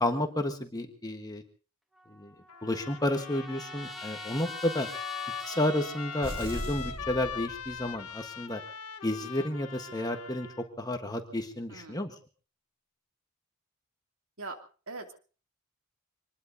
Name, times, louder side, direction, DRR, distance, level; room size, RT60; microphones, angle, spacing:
voice 1, 0.0-1.4 2.1-2.3 2.6-4.9 5.4-8.6 9.0-12.1, left 1 dB, 15° left, 5 dB, 1.3 m, -31 dB
Trumpet, 1.9-6.7, equal, ahead, 1.6 m, -45 dB
Trumpet 2, 2.5-10.7, left 7 dB, 80° left, 1.4 m, -41 dB
Flame Burst, 6.2-8.1, equal, 25° right, 2.3 m, -39 dB
voice 2, 11.7-12.0 14.4-14.6 14.9-15.1, right 3 dB, 65° right, 4 dB, 2.7 m, -41 dB
25.5 x 20.5 x 2.8 m, 0.37 s
head